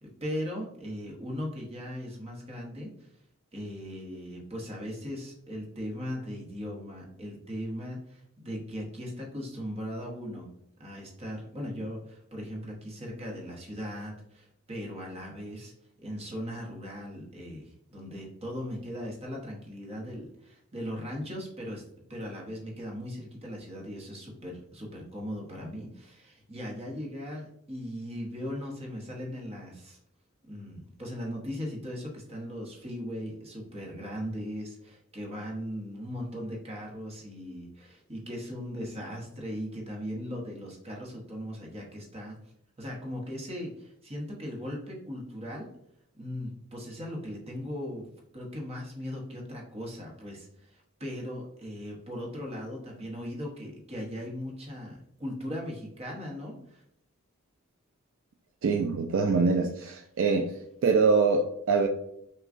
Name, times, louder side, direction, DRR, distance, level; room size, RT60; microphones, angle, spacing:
voice 1, 0.0-3.1 3.5-10.5 10.8-15.7 16.0-21.8 22.1-30.0 30.5-42.4 42.8-45.7 46.1-48.1 48.3-56.8, equal, 25° right, 0.9 m, -38 dB
voice 2, 58.6-60.5 60.8-61.9, right 4 dB, 60° right, 0.3 m, -24 dB
5.9 x 2.3 x 2.5 m
head